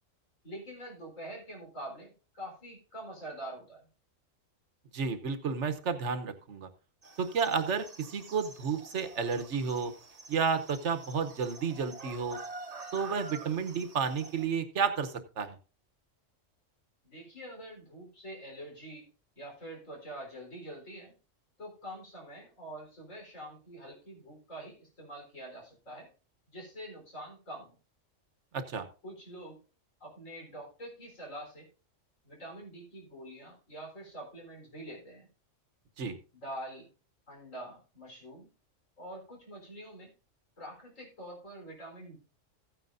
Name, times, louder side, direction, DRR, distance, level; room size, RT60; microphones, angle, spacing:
voice 1, 0.4-3.9 17.0-19.1 19.4-21.1 21.6-26.1 26.5-27.7 29.0-29.6 30.0-31.7 32.2-35.3 36.3-36.9 37.3-38.5 39.0-40.1 40.6-42.2, right 1 dB, 85° left, 0 dB, 4.5 m, -45 dB
voice 2, 4.9-6.7 7.2-9.9 10.3-12.4 12.9-15.6 28.5-28.9 36.0-36.2, right 6 dB, 65° right, 10 dB, 1.2 m, -31 dB
sound 1, 7.0-14.4, right 3 dB, 35° right, 1.0 m, -48 dB
15.5 x 9.3 x 2.6 m, 0.35 s
omnidirectional pair, 1.3 m